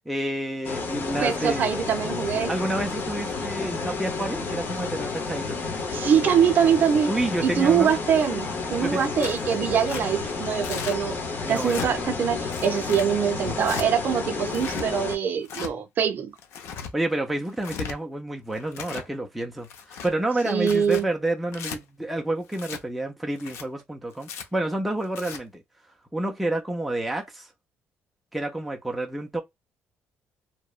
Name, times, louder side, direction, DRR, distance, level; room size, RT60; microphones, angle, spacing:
voice 1, 0.1-1.6 2.5-5.6 7.1-7.9 8.8-9.1 11.4-12.2 13.4-13.8 16.9-25.6 26.1-27.5 28.3-29.4, right 1 dB, ahead, 0.4 m, -29 dB
sound 1, 0.6-15.2, left 4 dB, 45° left, 0.7 m, -31 dB
voice 2, 1.2-2.5 5.9-7.1 7.4-11.2 11.5-16.3 20.4-21.1, right 8 dB, 45° right, 0.5 m, -23 dB
Tearing, 9.2-9.4 9.9-10.0 10.6-11.0 11.5-11.9 12.5-13.1 13.6-13.9 14.5-14.8 15.4-15.7 16.4-16.9 17.5-17.9 18.5-19.1 19.6-20.1 20.6-21.0 21.5-21.8 22.5-22.8 23.4-23.6 24.2-24.4 25.0-25.4, left 7 dB, 85° left, 0.5 m, -36 dB
2.8 x 2.1 x 2.3 m
cardioid pair, 165°, 5 cm